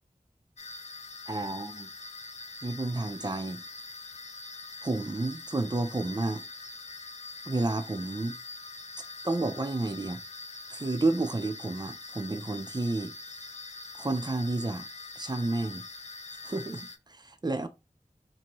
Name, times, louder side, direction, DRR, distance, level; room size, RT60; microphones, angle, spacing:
sound 1, 0.6-17.0, left 3 dB, 50° left, 0.4 m, -44 dB
voice 1, 1.3-1.9 2.6-3.6 4.8-6.4 7.5-8.3 9.2-10.2 10.7-13.1 13.9-14.9 15.2-15.8 16.4-17.7, right 2 dB, 30° right, 0.5 m, -31 dB
2.7 x 2.6 x 2.9 m
wide cardioid pair, 45°, 14 cm